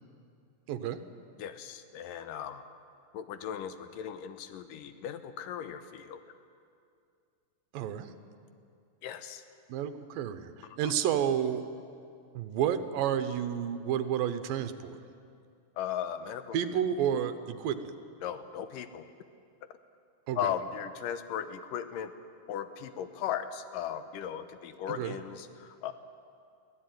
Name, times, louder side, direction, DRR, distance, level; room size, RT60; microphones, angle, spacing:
voice 1, 0.7-1.0 7.7-8.1 9.7-10.5 10.8-11.6 12.3-15.0 16.5-17.9 20.3-20.5 24.9-25.2, right 9 dB, 80° right, 10 dB, 2.7 m, -30 dB
voice 2, 1.4-2.6 3.1-6.2 9.0-9.4 10.8-10.9 15.8-16.6 18.2-19.1 20.4-22.1 22.5-25.9, left 9 dB, 75° left, 10 dB, 2.5 m, -37 dB
23.5 x 15.5 x 9.3 m, 2.4 s
omnidirectional pair, 4.0 m